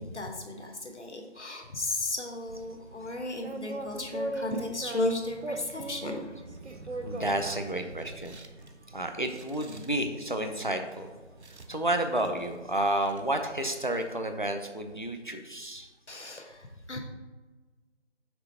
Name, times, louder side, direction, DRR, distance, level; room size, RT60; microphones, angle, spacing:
voice 1, 0.0-6.2 16.1-17.0, left 2 dB, 70° left, 3 dB, 1.1 m, -34 dB
sound 1, 2.5-14.1, right 2 dB, 65° right, 0.7 m, -42 dB
voice 2, 7.0-8.4 8.9-11.1 11.7-15.9, right 1 dB, 45° left, 6 dB, 0.4 m, -31 dB
6.0 x 3.2 x 5.5 m, 1.3 s
figure-of-eight pair, 170°, 36 cm